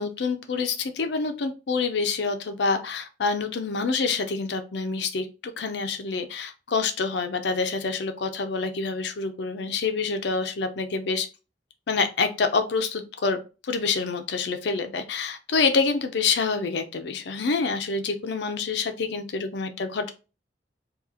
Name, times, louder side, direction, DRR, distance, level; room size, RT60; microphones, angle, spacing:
voice 1, 0.0-11.3 11.9-20.1, left 4 dB, 70° left, 8 dB, 0.5 m, -27 dB
2.9 x 2.3 x 3.7 m, 0.31 s
head